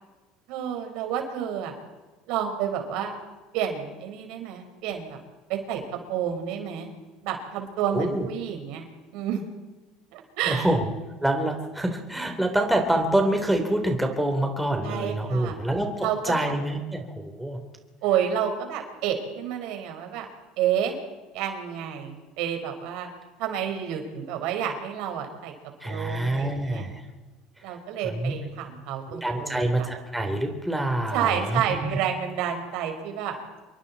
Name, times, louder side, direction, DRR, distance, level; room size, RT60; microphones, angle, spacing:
voice 1, 0.5-1.7 2.3-3.1 3.5-5.2 5.5-5.8 6.1-6.9 7.2-8.8 9.1-9.5 10.1-10.7 14.8-15.6 16.0-16.5 18.0-20.3 20.6-21.0 21.3-23.1 23.4-25.5 25.8-26.9 27.6-29.9 31.1-33.4, right 9 dB, 70° right, 4 dB, 4.6 m, -29 dB
voice 2, 7.9-8.3 10.5-10.9 11.2-17.6 25.8-27.0 28.0-28.4 29.1-32.0, right 1 dB, 5° right, 3 dB, 3.5 m, -26 dB
27.5 x 23.0 x 4.2 m, 1.2 s
supercardioid pair, 125°, 0 cm